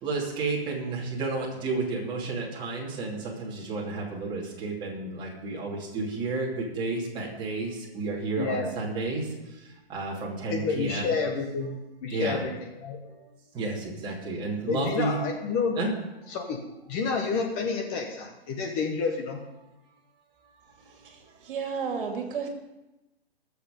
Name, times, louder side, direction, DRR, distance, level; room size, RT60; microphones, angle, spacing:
voice 1, 0.0-9.2 9.9-11.2 12.1-12.4 13.5-15.2 15.8-15.9, right 3 dB, 15° right, -5 dB, 2.8 m, -31 dB
voice 2, 8.4-8.7 10.5-13.0 14.7-15.8 16.3-16.6 16.9-19.4, left 5 dB, 25° left, 3 dB, 1.0 m, -29 dB
voice 3, 20.8-22.5, right 6 dB, 60° right, 3 dB, 2.5 m, -33 dB
20.0 x 7.0 x 5.2 m, 0.99 s
hypercardioid pair, 155°, 31 cm